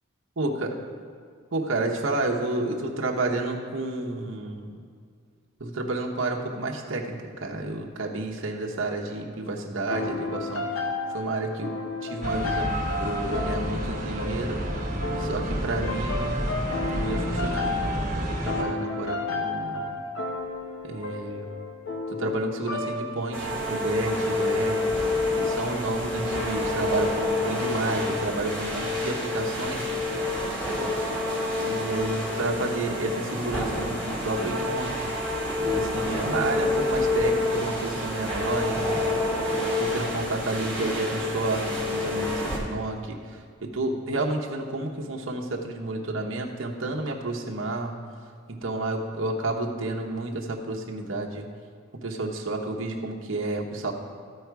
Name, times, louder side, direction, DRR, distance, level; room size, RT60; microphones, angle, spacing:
voice 1, 0.4-0.7 1.5-4.8 5.6-10.6 11.1-11.7 12.0-12.7 13.0-14.8 15.2-19.9 20.8-21.5 22.1-29.9 31.6-35.1 35.7-39.0 39.8-43.2 43.7-47.9 48.5-51.5 52.0-53.9, right 2 dB, 70° right, 0 dB, 1.0 m, -30 dB
sound 1, 9.9-23.6, left 3 dB, 80° left, 0.9 m, -32 dB
sound 2, 12.2-18.6, right 1 dB, 35° right, 1.4 m, -30 dB
sound 3, 23.3-42.6, left 2 dB, 5° left, 1.8 m, -28 dB
14.0 x 4.9 x 4.7 m, 2.1 s
head